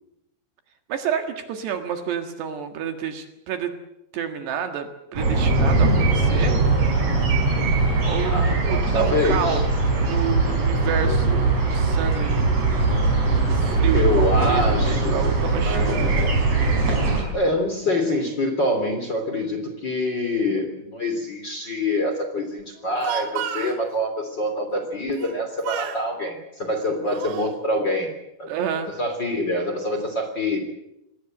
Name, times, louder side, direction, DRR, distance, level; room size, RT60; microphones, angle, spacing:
voice 1, 0.9-3.8 4.1-6.6 8.1-9.6 10.0-12.6 13.5-14.0 14.4-16.1 28.5-28.9, right 8 dB, 65° right, 6 dB, 3.6 m, -29 dB
sound 1, 5.1-17.2, right 3 dB, 35° right, 5.6 m, -21 dB
voice 2, 8.3-9.6 13.9-15.2 15.6-16.4 17.3-28.1 28.4-28.5 29.0-30.6, left 1 dB, 25° left, 5 dB, 3.0 m, -25 dB
Speech, 22.8-23.8 25.1-25.4 25.6-26.0 26.7-27.6, right 10 dB, 85° right, 4.0 m, -32 dB
27.0 x 19.5 x 7.7 m, 0.86 s
omnidirectional pair, 5.6 m